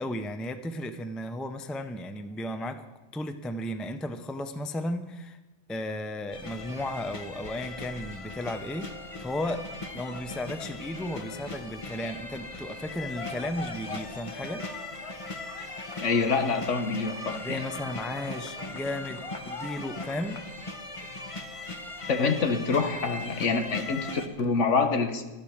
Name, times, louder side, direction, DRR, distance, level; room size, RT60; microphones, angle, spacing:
voice 1, 0.0-2.9 3.1-5.4 5.7-8.9 9.2-9.7 9.9-14.6 17.4-20.4, left 1 dB, ahead, 8 dB, 0.4 m, -34 dB
sound 1, 6.3-24.3, left 2 dB, 30° left, 1.0 m, -39 dB
voice 2, 16.0-17.6 22.1-25.3, left 4 dB, 75° left, 8 dB, 1.4 m, -26 dB
12.0 x 12.0 x 6.4 m, 1.1 s
omnidirectional pair, 1.3 m